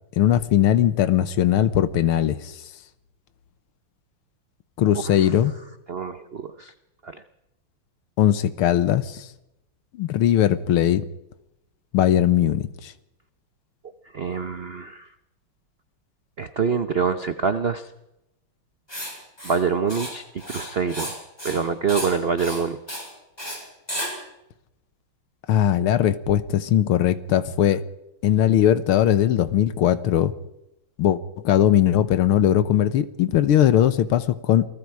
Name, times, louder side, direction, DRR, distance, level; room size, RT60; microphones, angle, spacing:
voice 1, 0.2-2.5 4.8-5.5 8.2-9.3 9.9-11.0 11.9-12.9 25.5-27.8 28.2-30.3 31.0-34.7, left 11 dB, 85° left, 14 dB, 1.9 m, -19 dB
voice 2, 5.9-6.7 14.1-15.0 16.4-17.8 19.4-20.2 20.5-21.2 21.4-23.0, right 6 dB, 80° right, 10 dB, 0.5 m, -25 dB
Writing, 18.9-19.1 19.4-19.6 19.9-20.1 20.4-21.1 21.4-21.6 21.9-22.1 22.4-22.6 22.9-23.1 23.4-23.6 23.9-24.1, equal, 10° left, 6.8 m, -32 dB
28.0 x 19.5 x 4.8 m, 0.87 s
omnidirectional pair, 2.3 m